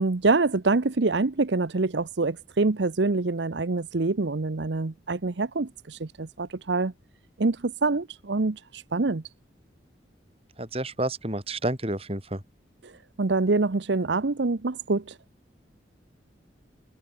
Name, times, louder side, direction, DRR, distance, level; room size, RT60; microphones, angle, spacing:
voice 1, 0.0-6.9 7.4-9.2 12.8-12.9 13.2-15.2, right 3 dB, 75° right, 0.8 m, -25 dB
voice 2, 10.6-12.4, right 1 dB, 30° right, 5.5 m, -30 dB
head